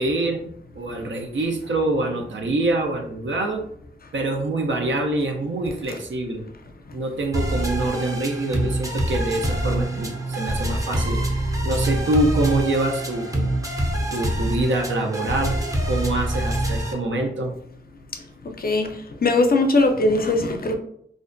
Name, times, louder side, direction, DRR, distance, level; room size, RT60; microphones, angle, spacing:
voice 1, 0.0-3.6 4.1-6.5 6.9-11.3 11.6-13.5 14.1-17.5, right 2 dB, 70° right, 3 dB, 0.5 m, -25 dB
sound 1, 7.3-16.9, right 1 dB, 15° right, 0.5 m, -25 dB
voice 2, 19.2-20.8, left 2 dB, 50° left, 5 dB, 0.4 m, -19 dB
2.5 x 2.1 x 2.5 m, 0.69 s
cardioid pair, 50°, 20 cm